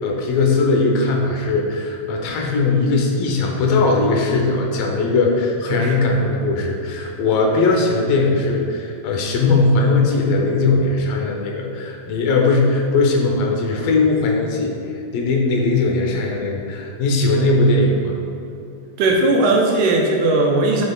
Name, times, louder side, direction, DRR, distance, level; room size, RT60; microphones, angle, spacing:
voice 1, 0.0-14.7 15.1-18.2, left 3 dB, 90° left, 1 dB, 2.6 m, -19 dB
voice 2, 5.7-6.2 19.0-20.8, right 2 dB, 80° right, 0 dB, 2.0 m, -18 dB
10.0 x 5.5 x 2.4 m, 2.7 s
omnidirectional pair, 3.9 m